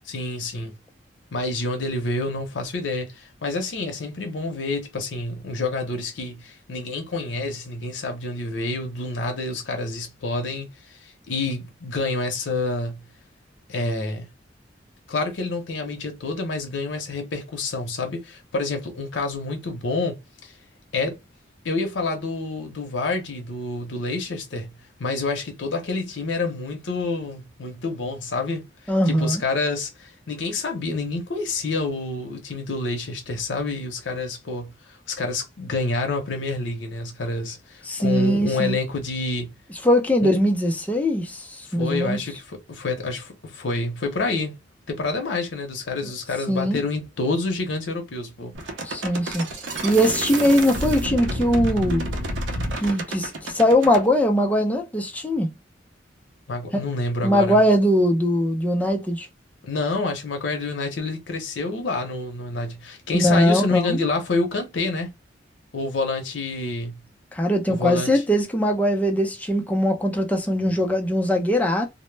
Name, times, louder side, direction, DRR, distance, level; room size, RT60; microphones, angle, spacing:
voice 1, 0.1-0.7 1.3-13.0 13.7-14.3 15.1-20.6 20.9-21.2 21.6-24.7 25.0-39.5 40.2-40.3 41.7-44.5 44.9-48.7 56.5-57.6 59.6-65.1 65.7-67.0 67.7-68.2, left 3 dB, 80° left, 0.6 m, -28 dB
voice 2, 28.9-29.4 37.9-38.8 39.8-42.2 46.5-46.8 48.8-49.5 49.8-52.0 52.8-55.5 56.7-56.8 57.2-59.3 63.1-64.0 67.3-71.9, equal, 10° left, 0.4 m, -21 dB
sound 1, 48.5-54.0, right 1 dB, 85° right, 0.6 m, -29 dB
2.0 x 2.0 x 3.1 m
head